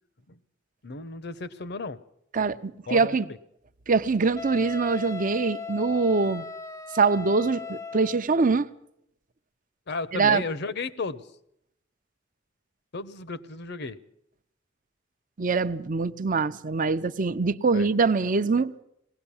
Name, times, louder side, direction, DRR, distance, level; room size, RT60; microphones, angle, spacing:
voice 1, 0.8-2.0 2.9-3.2 9.9-11.3 12.9-14.0 17.7-17.9, left 3 dB, 60° left, 0.9 m, -34 dB
voice 2, 2.3-3.3 3.9-6.4 6.9-8.7 10.1-10.4 15.4-18.7, right 4 dB, 45° right, 0.7 m, -24 dB
Wind instrument woodwind instrument, 4.4-8.3, left 5 dB, 15° left, 0.7 m, -37 dB
20.5 x 17.5 x 7.2 m
head